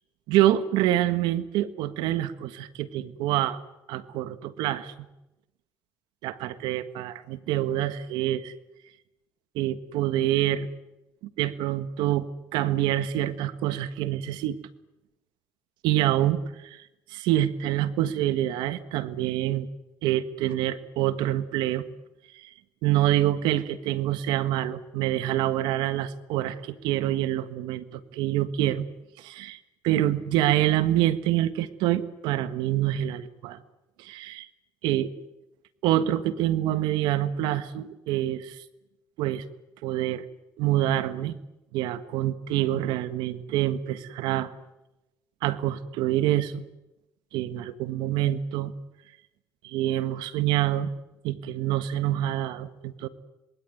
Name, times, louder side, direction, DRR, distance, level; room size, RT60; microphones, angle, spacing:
voice 1, 0.3-3.6 3.9-4.9 6.2-8.5 9.6-10.7 11.2-14.6 15.8-19.7 20.0-21.9 22.3-22.5 22.8-28.9 29.2-29.6 29.8-33.6 34.0-34.5 34.8-35.1 35.8-38.6 39.2-39.4 39.8-40.3 40.6-41.4 41.7-44.5 45.4-46.7 47.3-48.7 49.6-50.9 51.2-53.1, right 13 dB, 80° right, 13 dB, 1.6 m, -26 dB
26.5 x 21.0 x 9.4 m, 0.94 s
supercardioid pair, 80°, 8 cm